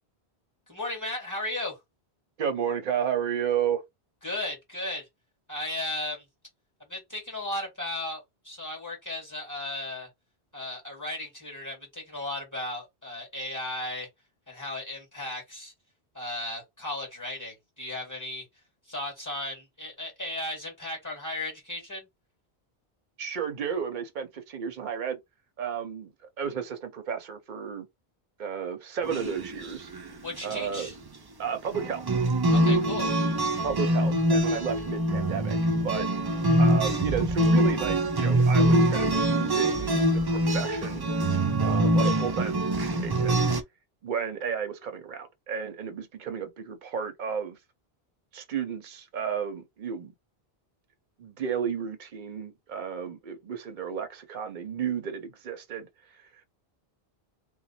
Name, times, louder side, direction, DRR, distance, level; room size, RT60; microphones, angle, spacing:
voice 1, 0.7-1.8 4.2-5.1 5.5-6.2 6.9-10.1 10.5-14.1 14.5-15.7 16.1-18.5 18.9-22.1 30.2-30.9 32.5-33.1, left 1 dB, 15° left, 1.9 m, -35 dB
voice 2, 2.4-3.8 23.2-25.2 25.6-27.9 28.4-29.9 30.4-30.9 31.4-32.0 33.6-35.6 35.8-36.1 36.6-41.0 41.6-42.5 42.9-43.5 44.0-47.6 48.3-50.1 51.2-55.9 56.2-56.3, right 7 dB, 55° right, 0.7 m, -32 dB
sound 1, 29.0-29.7 29.9-30.0 30.4-30.6 31.7-43.6, right 1 dB, 35° right, 0.4 m, -24 dB
3.1 x 2.2 x 4.1 m
omnidirectional pair, 1.1 m